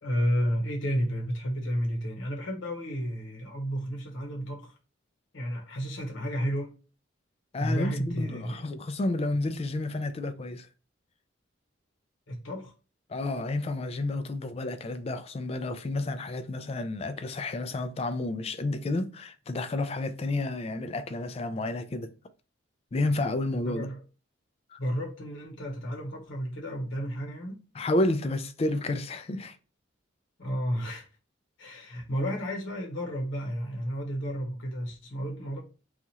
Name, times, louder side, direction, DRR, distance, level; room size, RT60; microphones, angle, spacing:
voice 1, 0.0-4.7 5.3-6.8 7.6-8.7 12.3-12.7 23.7-24.0 24.8-27.6 30.4-31.1 31.6-35.6, equal, 75° left, 0.9 m, -32 dB
voice 2, 7.5-10.7 13.1-22.1 22.9-23.9 24.7-24.8 27.8-29.6, left 2 dB, 30° left, 0.3 m, -30 dB
2.8 x 2.4 x 4.1 m
head